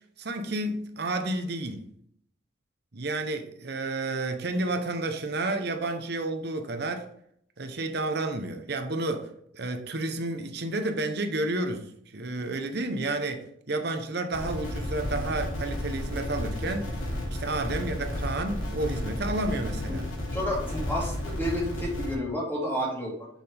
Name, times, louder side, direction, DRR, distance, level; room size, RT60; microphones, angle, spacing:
voice 1, 0.2-1.9 2.9-7.1 7.6-17.0 17.3-20.0, right 2 dB, 55° right, 0.9 m, -31 dB
sound 1, 14.3-22.2, left 1 dB, 80° left, 2.8 m, -32 dB
voice 2, 20.3-23.3, equal, 10° left, 2.2 m, -30 dB
7.0 x 5.9 x 3.5 m
head